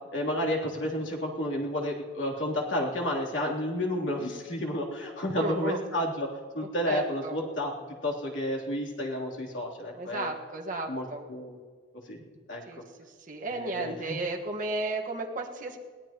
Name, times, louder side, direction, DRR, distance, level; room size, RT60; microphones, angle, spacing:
voice 1, 0.1-6.3 6.5-7.7 8.0-10.3 10.9-11.6 12.1-12.2 12.5-12.6 13.5-14.2, left 1 dB, 70° left, -2 dB, 3.2 m, -31 dB
voice 2, 5.3-5.8 6.9-7.4 9.9-11.3 12.7-12.8 13.3-15.8, right 2 dB, 40° right, 0 dB, 1.5 m, -33 dB
22.5 x 17.5 x 3.0 m, 1.5 s
head